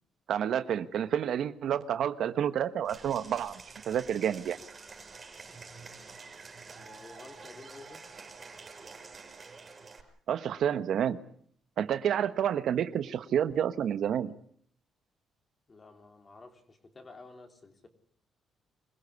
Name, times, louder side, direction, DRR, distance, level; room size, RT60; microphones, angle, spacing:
voice 1, 0.3-4.6 10.3-11.2 11.8-14.3, right 9 dB, 70° right, 1.1 m, -29 dB
Applause / Crowd, 2.9-10.0, right 4 dB, 30° right, 5.9 m, -48 dB
voice 2, 6.7-8.3 15.7-17.9, left 3 dB, 30° left, 3.8 m, -52 dB
25.5 x 16.0 x 9.7 m
cardioid pair, 90°, 0 cm